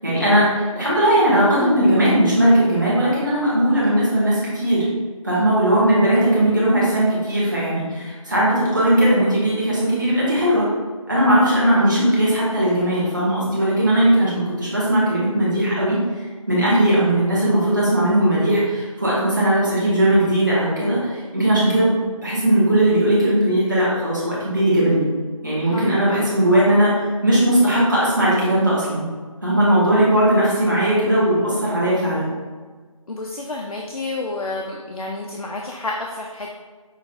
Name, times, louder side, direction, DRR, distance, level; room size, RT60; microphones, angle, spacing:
voice 1, 0.0-4.9 5.2-10.7 11.1-25.1 25.4-29.1 29.4-32.3, right 1 dB, 35° right, -8 dB, 1.2 m, -18 dB
voice 2, 33.1-36.5, left 2 dB, 80° left, 0 dB, 0.5 m, -29 dB
6.2 x 2.2 x 2.5 m, 1.5 s
figure-of-eight pair, 175°, 18 cm